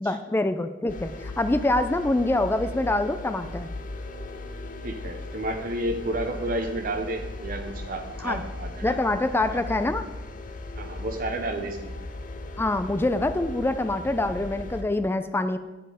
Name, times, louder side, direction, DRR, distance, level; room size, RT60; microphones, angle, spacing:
voice 1, 0.0-3.7 8.2-8.4 8.8-10.1 12.6-15.6, left 2 dB, 10° left, 10 dB, 0.3 m, -25 dB
sound 1, 0.9-14.8, left 2 dB, 45° left, 0.8 m, -37 dB
voice 2, 4.8-9.0 9.5-9.6 10.8-11.9, right 1 dB, 50° right, 5 dB, 0.7 m, -31 dB
8.9 x 7.7 x 4.9 m, 1.1 s
head